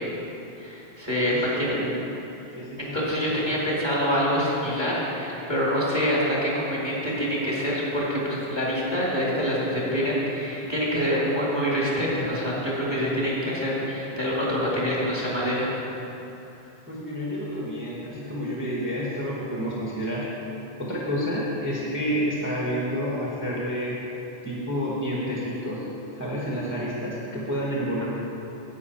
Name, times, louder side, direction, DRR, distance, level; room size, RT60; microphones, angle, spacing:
voice 1, 0.6-1.8 2.8-15.7, equal, 25° left, -6 dB, 2.4 m, -26 dB
voice 2, 1.3-1.8 2.5-3.0 16.9-20.3 20.8-24.0 24.4-25.8 26.1-28.1, equal, 10° right, -6 dB, 1.2 m, -29 dB
10.5 x 8.4 x 4.3 m, 3.0 s
omnidirectional pair, 1.1 m